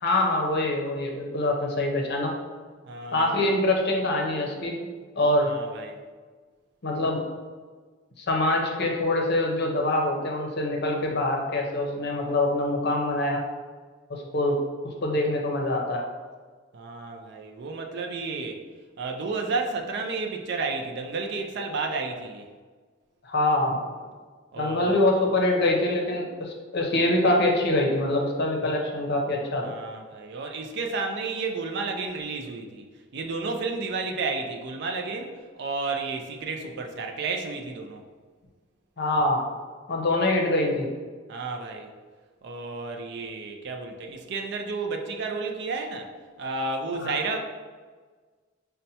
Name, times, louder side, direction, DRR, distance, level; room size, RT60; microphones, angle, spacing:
voice 1, 0.0-2.3 3.1-4.8 5.2-5.5 6.8-7.2 8.2-13.4 14.1-14.6 14.8-16.0 23.2-23.8 24.6-29.7 39.0-39.4 39.9-40.9 47.0-47.2, left 1 dB, 55° left, 1 dB, 0.6 m, -24 dB
voice 2, 2.9-3.3 5.4-6.0 16.7-18.6 19.0-22.5 24.5-25.1 29.6-32.9 33.1-38.0 41.3-41.9 42.4-46.1 46.4-47.4, right 3 dB, 60° right, 3 dB, 0.4 m, -32 dB
5.4 x 2.1 x 2.7 m, 1.4 s
head